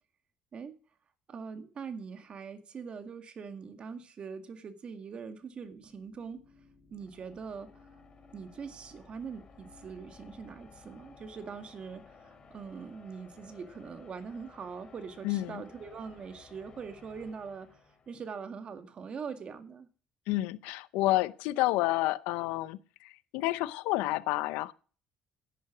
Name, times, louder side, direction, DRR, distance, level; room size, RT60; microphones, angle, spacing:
voice 1, 1.3-6.4 6.9-7.9 8.3-17.8 18.1-19.9, right 5 dB, 45° right, 2.0 m, -42 dB
sound 1, 5.4-18.5, left 4 dB, 35° left, 2.9 m, -56 dB
voice 2, 15.2-15.6 20.3-24.7, left 18 dB, 90° left, 0.7 m, -30 dB
11.0 x 9.3 x 6.0 m
supercardioid pair, 85°, 2 cm